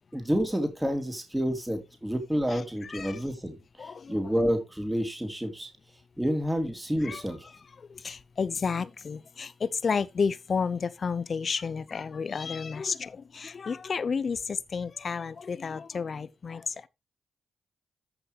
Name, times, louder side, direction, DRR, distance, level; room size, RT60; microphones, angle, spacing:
voice 1, 0.1-5.7 6.2-7.5, equal, 10° right, 3.1 m, -29 dB
voice 2, 2.5-3.2 3.8-4.2 7.0-7.2 7.9-16.7, left 5 dB, 50° left, 0.7 m, -31 dB
13.5 x 5.9 x 3.2 m
hypercardioid pair, 40°, 0 cm